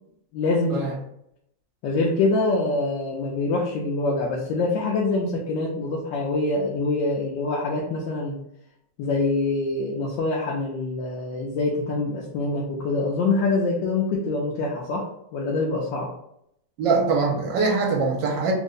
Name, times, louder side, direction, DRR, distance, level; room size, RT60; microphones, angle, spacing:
voice 1, 0.3-1.0 1.8-8.4 9.0-15.1 15.3-16.1, left 3 dB, 80° left, -2 dB, 1.3 m, -25 dB
voice 2, 16.8-18.5, right 4 dB, 80° right, 0 dB, 1.3 m, -22 dB
3.4 x 2.1 x 3.7 m, 0.75 s
omnidirectional pair, 2.0 m